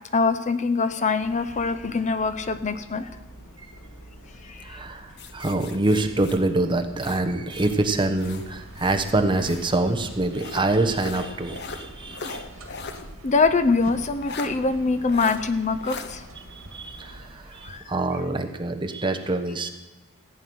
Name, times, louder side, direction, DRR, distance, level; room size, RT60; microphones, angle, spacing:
voice 1, 0.1-3.1 4.4-4.8 13.2-16.2 17.6-18.0, left 4 dB, 35° left, 12 dB, 0.6 m, -24 dB
sound 1, 1.2-17.4, equal, 90° left, 2.7 m, -47 dB
voice 2, 4.6-12.4 16.5-19.7, right 2 dB, 25° right, 6 dB, 1.0 m, -25 dB
sound 2, 5.2-7.8 8.2-9.7 10.3-13.1 13.4-13.5 14.2-14.5 15.1-15.4 15.8-16.1, left 4 dB, 55° left, 1.0 m, -39 dB
sound 3, 7.6-17.8, right 1 dB, 85° right, 2.1 m, -45 dB
15.5 x 9.3 x 6.2 m, 1.0 s
head